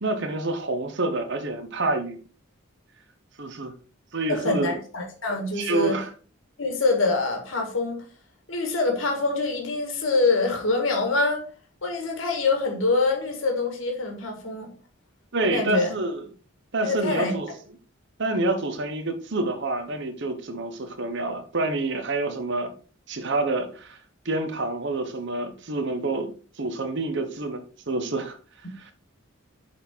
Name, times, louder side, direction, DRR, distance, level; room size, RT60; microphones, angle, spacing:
voice 1, 0.0-2.2 3.4-3.7 4.1-4.8 5.5-6.1 15.3-16.2 16.7-17.5 18.2-22.7 23.1-24.0 24.2-26.3 26.6-28.4 28.8-28.9, right 2 dB, 60° right, 1.1 m, -27 dB
voice 2, 4.3-6.0 6.6-8.0 8.5-11.4 11.8-14.7 15.4-15.9 16.8-17.3, left 3 dB, 70° left, 1.8 m, -25 dB
7.6 x 4.3 x 4.5 m
head